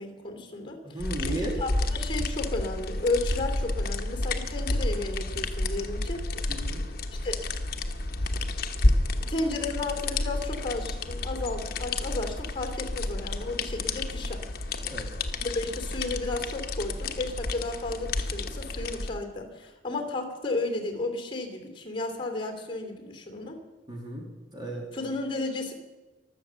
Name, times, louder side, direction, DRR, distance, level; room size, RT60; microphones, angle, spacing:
voice 1, 0.0-0.8 1.2-6.2 7.2-7.4 9.3-14.4 15.4-23.6 24.9-25.7, left 2 dB, 30° left, 5 dB, 3.0 m, -33 dB
voice 2, 0.8-1.6 6.5-6.8 14.8-15.1 23.9-24.2 24.5-24.9, right 2 dB, 25° right, -2 dB, 2.6 m, -35 dB
sound 1, 1.0-19.1, left 2 dB, 50° left, 1.1 m, -30 dB
23.5 x 8.0 x 7.0 m, 1.2 s
head